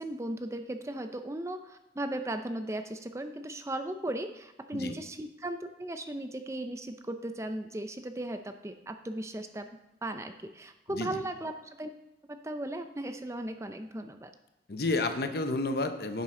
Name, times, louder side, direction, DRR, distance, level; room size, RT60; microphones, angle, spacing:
voice 1, 0.0-9.7 10.0-11.9 12.3-14.3, right 1 dB, 15° right, 7 dB, 0.5 m, -37 dB
voice 2, 10.9-11.2 14.7-16.2, left 2 dB, 60° left, 7 dB, 0.8 m, -31 dB
10.5 x 7.5 x 3.8 m, 0.94 s
head